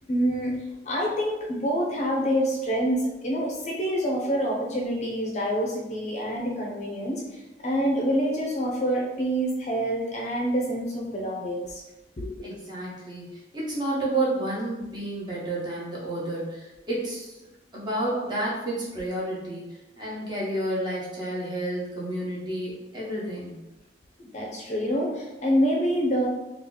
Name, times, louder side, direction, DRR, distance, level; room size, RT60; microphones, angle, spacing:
voice 1, 0.1-0.5 0.9-11.8 12.2-12.3 24.2-26.3, equal, 40° left, -1 dB, 0.5 m, -26 dB
voice 2, 12.4-17.4 17.7-23.6, right 1 dB, 25° right, -6 dB, 1.0 m, -30 dB
2.9 x 2.3 x 3.8 m, 1.0 s
head